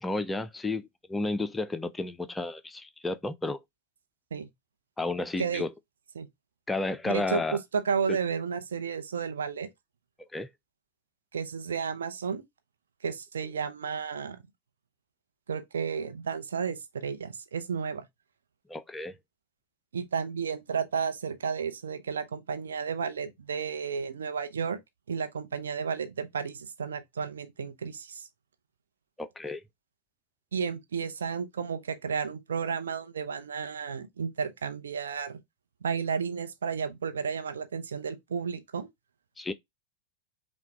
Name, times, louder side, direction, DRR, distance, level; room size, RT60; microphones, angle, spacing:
voice 1, 0.0-3.6 5.0-5.7 6.7-7.6 8.1-8.2 10.3-10.5 18.7-19.2 29.2-29.6 39.4-39.5, left 2 dB, 10° left, 0.4 m, -32 dB
voice 2, 7.0-9.7 11.3-12.4 13.0-14.4 15.5-18.0 19.9-24.8 25.1-28.3 30.5-35.4 35.8-38.9, right 6 dB, 65° right, 0.7 m, -32 dB
5.7 x 2.3 x 3.3 m
figure-of-eight pair, 90°, 0 cm